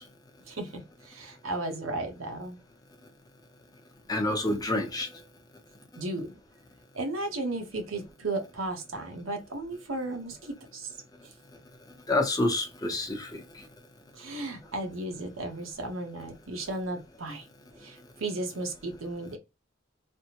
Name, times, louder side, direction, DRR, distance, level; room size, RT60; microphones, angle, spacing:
voice 1, 0.5-2.6 6.0-6.4 6.9-10.9 14.1-17.5 17.8-19.4, right 2 dB, 80° right, 0.9 m, -35 dB
voice 2, 4.1-5.1 12.1-13.4, left 2 dB, 20° left, 0.7 m, -27 dB
3.4 x 2.1 x 2.9 m
head